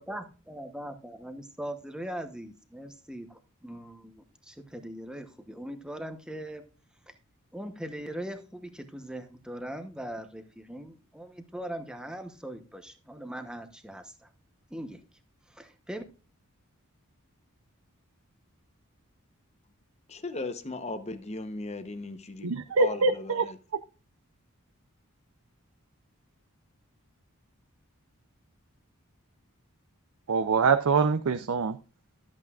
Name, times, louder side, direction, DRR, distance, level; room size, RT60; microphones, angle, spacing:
voice 1, 0.0-6.6 7.1-7.2 7.5-14.3 14.7-15.0 15.5-16.0, right 1 dB, 5° right, 0.9 m, -40 dB
voice 2, 20.1-22.5 22.8-23.6, left 2 dB, 30° left, 0.8 m, -37 dB
voice 3, 22.4-23.4 30.3-31.8, right 4 dB, 75° right, 0.5 m, -24 dB
13.0 x 8.4 x 2.4 m
head